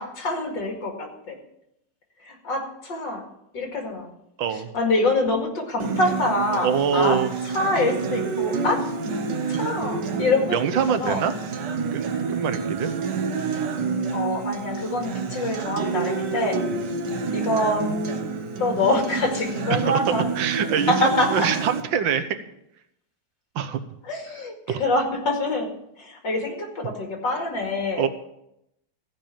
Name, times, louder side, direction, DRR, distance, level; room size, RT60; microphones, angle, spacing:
voice 1, 0.0-1.4 2.3-3.3 3.5-4.1 4.5-7.2 7.5-8.9 9.5-10.6 11.0-11.2 14.1-16.7 17.3-17.9 18.6-20.3 20.9-21.5 24.0-25.7 26.0-28.0, left 2 dB, 70° left, 2 dB, 2.8 m, -25 dB
voice 2, 4.4-4.7 6.6-7.3 10.5-11.3 11.9-12.9 16.7-16.9 19.7-20.0 20.4-20.9 21.3-22.4 23.5-23.8 24.7-24.8 28.0-28.1, right 7 dB, 90° right, 10 dB, 1.6 m, -24 dB
Acoustic guitar, 5.8-21.8, right 5 dB, 65° right, 1.7 m, -28 dB
15.0 x 5.3 x 8.7 m, 0.81 s
omnidirectional pair, 2.0 m